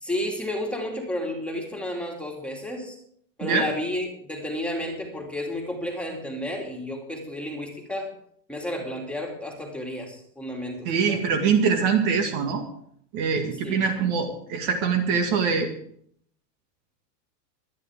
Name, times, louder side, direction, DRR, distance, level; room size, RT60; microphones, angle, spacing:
voice 1, 0.0-3.0 3.4-8.1 8.5-11.2 13.6-13.8, left 1 dB, ahead, 0 dB, 2.6 m, -32 dB
voice 2, 10.9-12.6 13.1-15.7, right 6 dB, 40° right, 4 dB, 1.9 m, -23 dB
24.0 x 10.0 x 3.6 m, 0.65 s
supercardioid pair, 155°, 48 cm